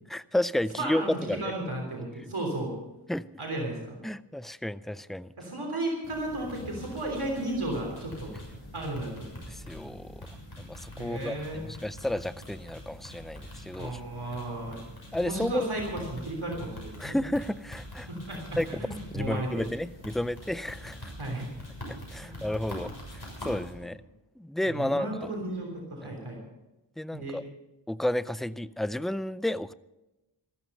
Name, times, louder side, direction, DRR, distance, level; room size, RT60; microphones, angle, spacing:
voice 1, 0.1-1.4 3.1-3.3 4.0-5.3 9.5-10.3 10.6-14.0 15.1-15.6 17.0-18.1 18.6-18.7 19.1-21.1 21.9-24.0 24.4-25.3 26.0-26.1 27.0-27.4 27.9-29.7, left 1 dB, ahead, 16 dB, 0.4 m, -32 dB
voice 2, 0.8-2.7 3.4-4.0 5.4-8.3 8.7-9.3 11.0-11.6 13.8-14.8 15.1-17.2 18.1-19.6 21.2-21.5 22.2-22.4 23.7-23.9 24.6-26.4 27.1-27.4, right 1 dB, 75° right, 0 dB, 3.4 m, -34 dB
sound 1, 6.0-23.7, equal, 50° left, 6.7 m, -44 dB
14.5 x 14.0 x 5.4 m, 0.98 s
wide cardioid pair, 50°, 50 cm